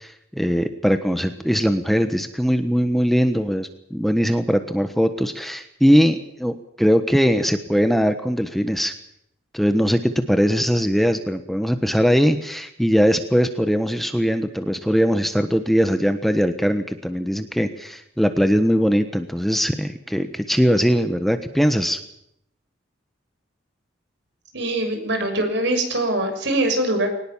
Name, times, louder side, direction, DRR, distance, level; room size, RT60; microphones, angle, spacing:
voice 1, 0.0-8.9 9.5-22.0, equal, ahead, 8 dB, 1.2 m, -20 dB
voice 2, 24.5-27.1, right 1 dB, 60° right, 6 dB, 6.8 m, -23 dB
22.5 x 19.5 x 7.3 m, 0.75 s
head